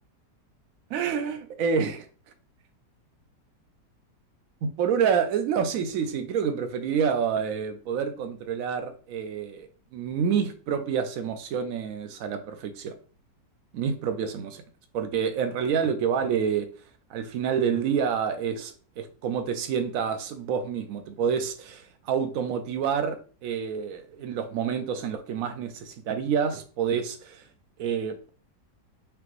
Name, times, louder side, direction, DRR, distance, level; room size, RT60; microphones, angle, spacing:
voice 1, 0.9-2.1 4.6-12.9 13.7-14.6 14.9-16.7 17.1-27.4 27.8-28.3, right 7 dB, 70° right, 0.8 m, -28 dB
5.0 x 2.9 x 3.1 m
omnidirectional pair, 2.0 m